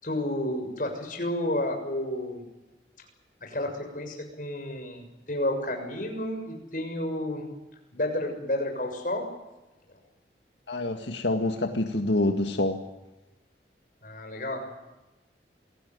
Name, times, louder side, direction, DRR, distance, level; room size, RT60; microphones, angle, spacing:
voice 1, 0.0-2.4 3.4-7.5 7.9-9.3 14.0-14.7, left 1 dB, 50° left, 4 dB, 6.8 m, -31 dB
voice 2, 10.7-12.8, left 2 dB, 85° left, 5 dB, 1.9 m, -26 dB
27.5 x 18.5 x 9.6 m, 1.0 s
head